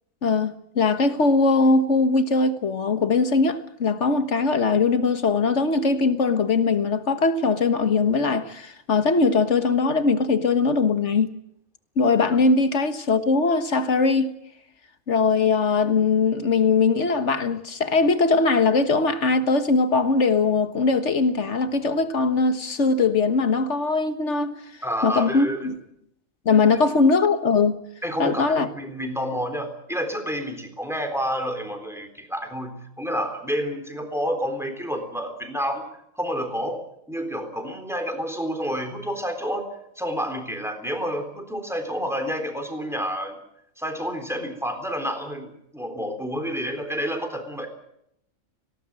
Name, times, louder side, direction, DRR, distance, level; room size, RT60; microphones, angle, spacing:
voice 1, 0.2-11.3 12.0-14.3 15.1-24.5 25.0-25.7 26.4-27.8 28.2-28.7, left 4 dB, 60° left, 1.7 m, -21 dB
voice 2, 24.8-25.7 28.0-35.9 36.1-36.8 37.1-39.7 40.0-43.4 43.8-47.7, equal, ahead, 3.7 m, -29 dB
18.5 x 17.5 x 8.9 m
omnidirectional pair, 1.4 m